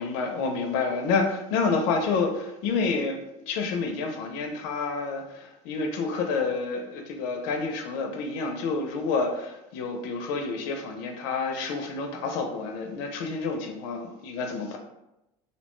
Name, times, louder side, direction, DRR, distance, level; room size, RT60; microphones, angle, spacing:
voice 1, 0.0-3.2 3.5-14.8, left 4 dB, 85° left, 4 dB, 0.4 m, -29 dB
2.6 x 2.1 x 2.9 m, 0.92 s
cardioid pair, 165°, 14 cm